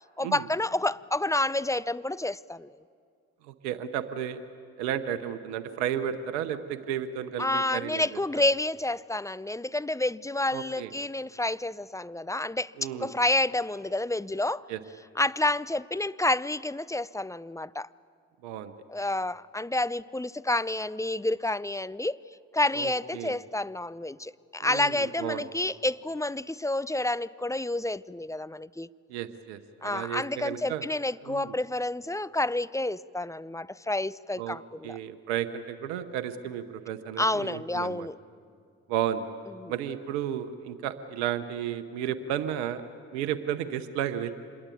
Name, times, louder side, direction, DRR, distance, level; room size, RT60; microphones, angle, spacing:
voice 1, 0.2-2.8 7.4-12.7 13.0-14.7 15.2-17.9 18.9-22.2 22.5-28.9 29.8-35.0 37.2-38.1 39.6-39.7, left 2 dB, 10° left, 0.6 m, -29 dB
voice 2, 3.4-4.4 4.8-8.1 10.5-10.9 12.8-13.1 14.7-14.8 18.4-18.7 22.7-23.4 24.6-25.5 29.1-30.9 31.2-31.6 34.4-34.6 34.8-38.1 38.9-39.2 39.7-42.8 43.1-44.3, right 10 dB, 90° right, 0.9 m, -33 dB
26.5 x 21.5 x 8.5 m
hypercardioid pair, 45°, 34 cm